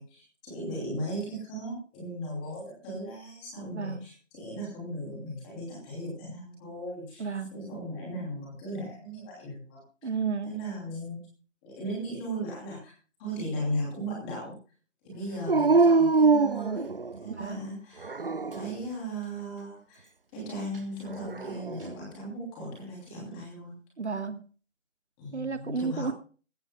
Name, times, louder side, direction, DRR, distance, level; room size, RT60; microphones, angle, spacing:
voice 1, 0.0-9.8 10.4-11.2 11.6-12.9 13.2-14.5 15.0-16.9 17.2-18.1 18.5-23.7 25.2-26.1, right 1 dB, 5° left, 2.8 m, -37 dB
voice 2, 3.7-4.1 7.2-7.5 10.0-10.5 17.3-17.7 24.0-24.5 25.3-26.1, right 5 dB, 65° right, 1.3 m, -32 dB
Dog, 15.5-17.4 18.0-18.8 21.1-21.9, right 4 dB, 50° right, 0.6 m, -24 dB
19.5 x 16.5 x 2.2 m
figure-of-eight pair, 175°, 37 cm